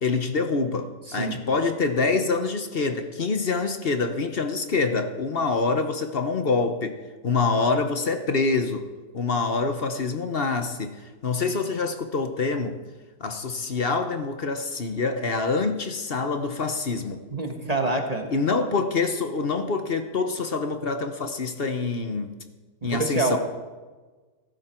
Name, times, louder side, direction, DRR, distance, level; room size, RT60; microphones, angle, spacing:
voice 1, 0.0-7.0 7.2-8.8 9.1-11.0 11.2-12.8 13.2-17.2 18.3-22.4 22.8-23.4, left 4 dB, 40° left, 7 dB, 1.0 m, -26 dB
voice 2, 1.1-1.4 17.3-18.3 22.9-23.4, right 2 dB, 25° right, 3 dB, 1.4 m, -26 dB
15.5 x 13.5 x 4.5 m, 1.3 s
omnidirectional pair, 1.7 m